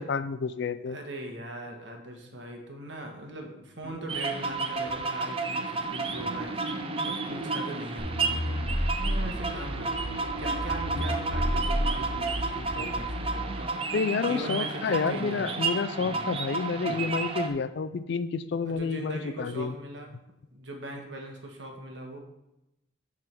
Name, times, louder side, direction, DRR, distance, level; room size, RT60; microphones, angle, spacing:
voice 1, 0.0-1.0 13.9-19.7, left 5 dB, 60° left, 13 dB, 0.4 m, -29 dB
voice 2, 0.9-13.7 14.3-15.6 18.7-20.1 20.5-22.2, right 1 dB, 70° right, 2 dB, 1.4 m, -40 dB
sound 1, 3.8-5.1 5.8-5.9 6.1-6.4 6.7-7.6 8.5-9.4 9.7-9.9 10.9-12.4 12.7-13.0 14.4-14.6 15.0-15.3 16.0-16.3 16.9-17.1 17.5-17.6 18.7-18.8, equal, 35° left, 1.2 m, -44 dB
sound 2, 4.1-17.5, right 4 dB, 30° right, 0.6 m, -32 dB
sound 3, 8.0-13.4, equal, 10° right, 2.0 m, -31 dB
7.6 x 3.7 x 6.1 m, 0.90 s
head